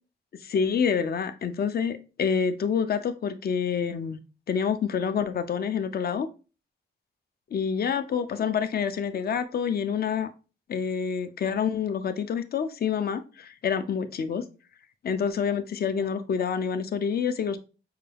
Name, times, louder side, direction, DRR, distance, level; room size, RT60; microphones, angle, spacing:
voice 1, 0.3-4.2 4.5-6.3 7.5-10.3 10.7-14.4 15.0-17.6, left 7 dB, 50° left, 10 dB, 0.4 m, -27 dB
5.6 x 2.3 x 3.3 m, 0.34 s
wide cardioid pair, 120°, 20 cm